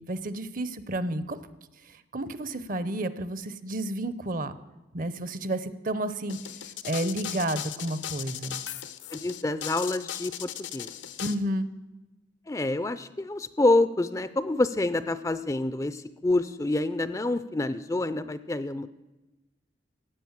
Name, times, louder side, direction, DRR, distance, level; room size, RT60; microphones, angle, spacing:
voice 1, 0.0-1.4 1.9-4.5 4.9-6.4 6.8-8.6 11.2-11.7, right 1 dB, 45° right, 14 dB, 0.7 m, -31 dB
sound 1, 6.3-11.3, left 11 dB, 85° left, 0.8 m, -37 dB
voice 2, 9.1-10.9 12.5-18.9, left 2 dB, 15° left, 14 dB, 0.4 m, -27 dB
15.0 x 9.1 x 7.2 m, 1.1 s
head